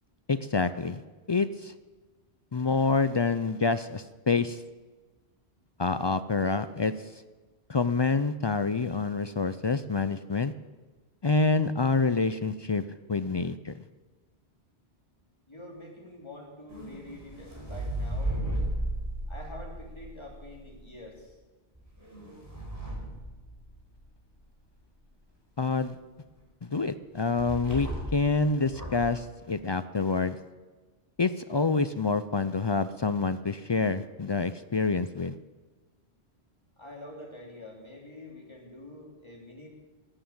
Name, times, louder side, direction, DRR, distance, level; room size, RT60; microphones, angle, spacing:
voice 1, 0.3-1.0 1.3-1.7 2.5-4.6 5.8-6.9 7.7-10.5 11.2-12.8 13.1-13.8 25.6-26.0 26.6-30.4 31.2-35.4, left 4 dB, 45° left, 12 dB, 0.3 m, -27 dB
voice 2, 15.5-18.4 19.3-21.4 36.8-39.7, left 1 dB, 25° left, -1 dB, 3.3 m, -46 dB
sound 1, 16.7-20.8 21.8-24.1 27.4-28.3 28.7-29.1, right 1 dB, 15° right, 4.6 m, -35 dB
15.5 x 9.4 x 8.7 m, 1.3 s
omnidirectional pair, 1.1 m